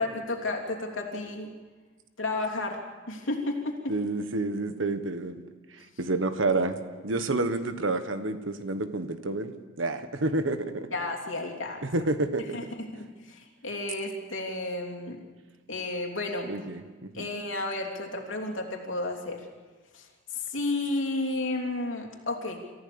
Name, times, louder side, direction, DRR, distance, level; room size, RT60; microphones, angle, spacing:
voice 1, 0.0-1.5 2.2-2.8 3.1-3.9 10.9-11.8 12.5-15.2 15.7-16.5 17.1-19.4 19.9-20.1 20.3-22.6, left 2 dB, 85° left, 1 dB, 3.1 m, -32 dB
voice 2, 3.9-5.4 6.0-9.5 9.8-10.9 11.8-12.6 16.5-17.3, right 2 dB, 80° right, 10 dB, 1.4 m, -29 dB
28.0 x 15.0 x 7.0 m, 1.4 s
head